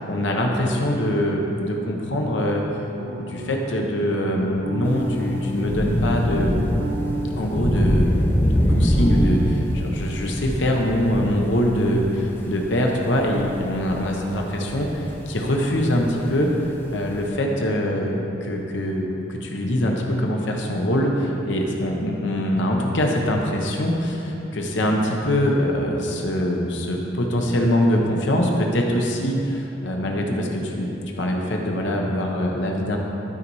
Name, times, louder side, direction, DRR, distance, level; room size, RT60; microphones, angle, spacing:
voice 1, 0.0-2.6 3.2-6.6 7.4-8.1 8.7-16.5 16.9-33.0, equal, 70° left, 0 dB, 0.9 m, -23 dB
sound 1, 3.0-3.8 4.3-5.8 6.2-8.2 8.4-9.5, right 2 dB, 85° right, 0.7 m, -31 dB
Thunder / Rain, 4.8-17.3, equal, 10° left, 0.5 m, -25 dB
12.5 x 4.1 x 4.7 m, 3.0 s
head